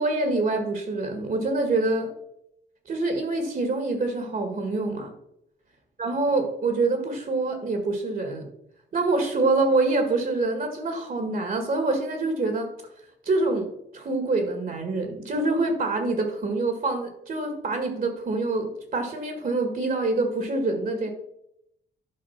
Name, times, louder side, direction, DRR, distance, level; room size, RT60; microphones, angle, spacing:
voice 1, 0.0-2.1 2.8-5.1 6.0-8.5 8.9-12.7 13.2-13.7 13.9-21.1, right 3 dB, 50° right, 5 dB, 1.9 m, -25 dB
11.5 x 5.3 x 5.8 m, 0.79 s
cardioid pair, 110°, 19 cm